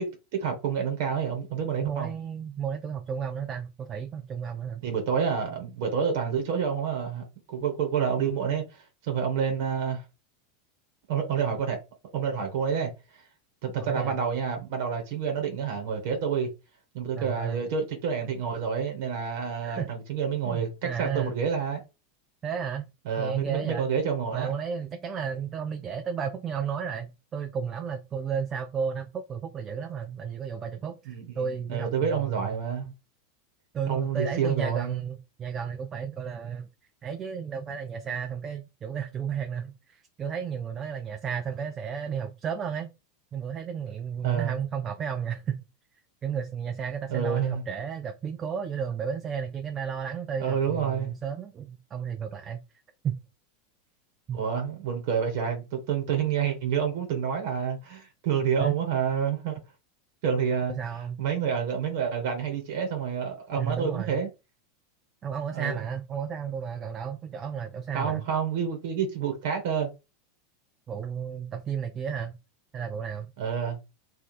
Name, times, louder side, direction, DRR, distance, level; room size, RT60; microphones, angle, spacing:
voice 1, 0.0-2.1 4.8-10.0 11.1-11.8 12.1-13.2 13.6-16.5 16.9-21.8 23.0-24.5 31.1-32.9 33.9-34.9 44.2-44.5 47.1-47.6 50.4-51.1 54.3-59.6 60.2-60.7 61.2-64.3 65.5-65.8 67.9-69.9 73.4-73.8, right 7 dB, 55° right, 1.2 m, -28 dB
voice 2, 1.8-4.8 13.8-14.2 17.2-17.7 19.6-19.9 20.4-21.4 22.4-22.9 23.2-23.9 24.3-32.5 33.7-36.7 37.0-42.9 43.3-45.6 46.2-52.6 53.0-53.2 54.3-54.4 58.6-58.8 60.8-61.2 63.6-64.2 65.2-68.3 70.9-72.4 72.7-73.3, right 7 dB, 30° right, 0.5 m, -33 dB
3.2 x 2.2 x 4.1 m
figure-of-eight pair, 85°, 0 cm